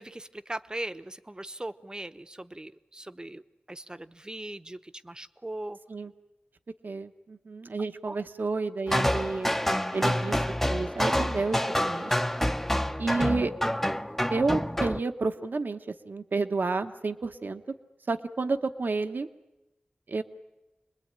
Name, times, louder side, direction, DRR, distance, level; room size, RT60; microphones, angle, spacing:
voice 1, 0.0-3.4 3.7-5.8 8.1-8.2, right 1 dB, 25° right, 10 dB, 0.9 m, -39 dB
voice 2, 6.8-9.6 9.9-10.4 10.7-12.1 13.0-13.5 14.3-17.6 18.1-19.3 20.1-20.2, right 3 dB, 70° right, 8 dB, 1.1 m, -30 dB
sound 1, 8.9-15.0, left 1 dB, 10° left, 0.8 m, -27 dB
27.0 x 21.0 x 8.9 m, 0.97 s
wide cardioid pair, 55°, 3 cm